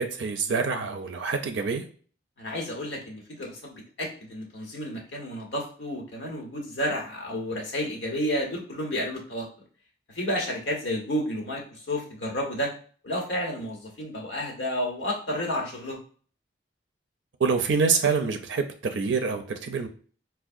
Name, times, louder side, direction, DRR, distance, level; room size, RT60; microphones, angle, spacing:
voice 1, 0.0-1.8 17.4-19.9, right 5 dB, 75° right, 6 dB, 0.4 m, -26 dB
voice 2, 2.4-9.5 10.1-12.7 13.0-16.0, equal, 70° left, 0 dB, 1.1 m, -31 dB
4.4 x 2.2 x 2.5 m, 0.42 s
head